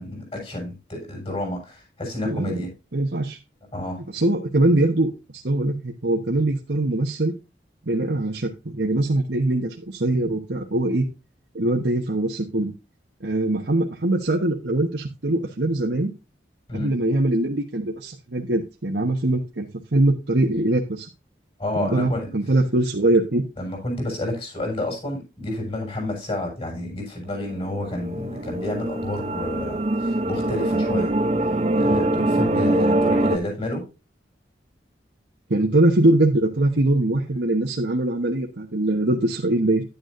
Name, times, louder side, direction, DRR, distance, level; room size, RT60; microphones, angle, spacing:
voice 1, 0.0-2.7 3.7-4.0 16.7-17.0 21.6-22.3 23.6-31.1 31.7-33.8, left 1 dB, 30° left, 1 dB, 6.1 m, -30 dB
voice 2, 2.9-3.4 4.1-7.3 7.9-11.0 11.5-12.7 13.2-16.1 16.7-21.1 21.8-23.4 35.5-39.8, right 2 dB, 70° right, 1 dB, 1.2 m, -22 dB
sound 1, 27.5-33.4, right 1 dB, 35° right, 0.6 m, -23 dB
11.0 x 9.1 x 2.6 m, 0.28 s
head